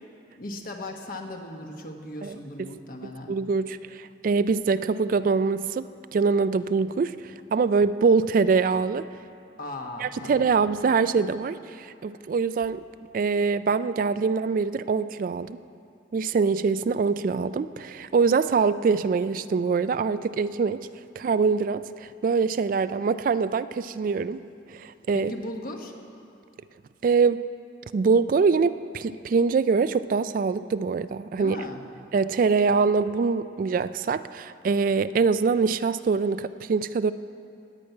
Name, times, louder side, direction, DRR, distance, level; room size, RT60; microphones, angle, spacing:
voice 1, 0.4-3.4 9.6-10.5 25.1-25.9 31.4-31.8, left 1 dB, 50° left, 3 dB, 1.3 m, -37 dB
voice 2, 3.0-5.9 6.1-9.1 10.0-12.8 13.1-15.6 16.1-20.8 21.2-24.4 24.7-25.3 27.0-27.4 27.9-31.6 32.1-37.1, right 5 dB, 50° right, 14 dB, 0.3 m, -24 dB
17.0 x 5.9 x 9.4 m, 2.5 s
head